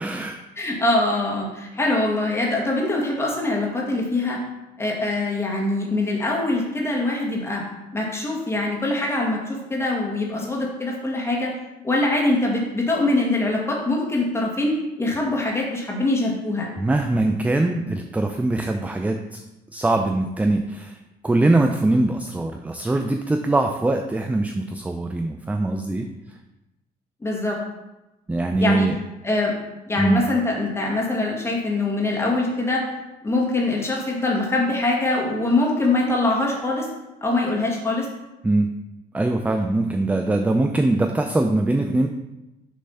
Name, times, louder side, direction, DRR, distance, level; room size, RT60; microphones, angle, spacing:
voice 1, 0.0-0.4 16.8-19.4 19.7-20.9 21.2-26.0 28.3-28.9 30.0-30.2 38.4-38.7 39.1-42.1, right 2 dB, 10° right, 5 dB, 0.4 m, -22 dB
voice 2, 0.5-4.4 4.8-7.6 7.9-11.5 11.8-16.7 27.2-27.6 28.6-28.9 29.2-29.5 29.9-32.9 33.2-36.9 37.2-38.1, left 2 dB, 15° left, -2 dB, 1.7 m, -23 dB
6.8 x 3.2 x 5.5 m, 0.99 s
cardioid pair, 110°, 17 cm